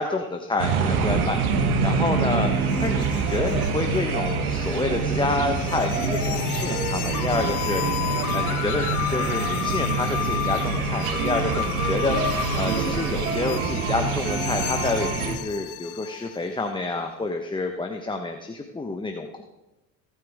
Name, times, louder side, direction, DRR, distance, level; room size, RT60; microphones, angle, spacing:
voice 1, 0.0-7.8 8.3-19.4, left 3 dB, 10° left, 4 dB, 1.3 m, -28 dB
sound 1, 0.6-15.4, right 5 dB, 90° right, 1.6 m, -25 dB
sound 2, 1.9-16.5, left 13 dB, 85° left, 0.9 m, -32 dB
22.0 x 9.3 x 3.7 m, 0.98 s
hypercardioid pair, 75°, 42 cm